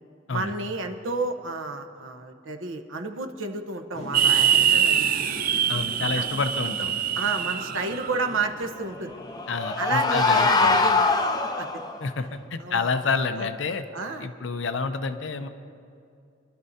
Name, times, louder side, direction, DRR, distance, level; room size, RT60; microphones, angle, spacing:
voice 1, 0.3-5.4 6.1-6.3 7.2-9.1 9.8-11.2 11.6-11.8 12.6-12.8 13.4-13.5 13.9-14.3, right 3 dB, 85° right, 5 dB, 1.0 m, -31 dB
sound 1, 3.9-9.4, equal, 45° left, 3.4 m, -41 dB
sound 2, 4.1-8.3, right 9 dB, 45° right, 0.5 m, -24 dB
voice 2, 5.7-6.9 9.5-10.8 12.0-13.8 14.2-15.5, left 4 dB, 65° left, 9 dB, 0.6 m, -28 dB
sound 3, 9.0-12.0, left 3 dB, 20° left, 0.7 m, -22 dB
25.5 x 12.0 x 2.8 m, 2.4 s
head